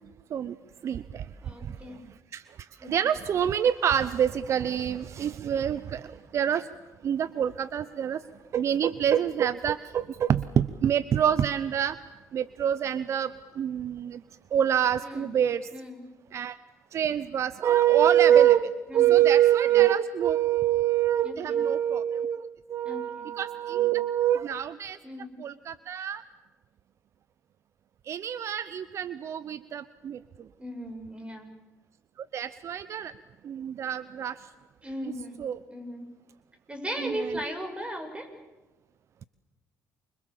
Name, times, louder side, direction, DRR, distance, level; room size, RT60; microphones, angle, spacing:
voice 1, 0.8-1.2 2.3-2.4 2.8-6.0 6.3-6.7 7.0-8.2 8.5-12.0 12.3-13.3 13.6-14.2 14.5-15.7 16.3-16.6 16.9-25.0 25.4-26.2 28.1-30.2 32.3-33.1 33.4-34.3 35.4-35.6 37.0-37.2, right 10 dB, 60° right, 16 dB, 0.8 m, -25 dB
voice 2, 1.4-2.0 2.8-3.0 15.0-15.3 15.7-16.1 18.9-19.2 21.2-21.6 22.8-23.3 25.0-25.4 30.6-31.5 34.8-35.4 35.7-36.1 36.7-38.3, equal, 20° right, 6 dB, 7.0 m, -37 dB
28.5 x 25.5 x 7.3 m, 1.1 s
supercardioid pair, 65°, 6 cm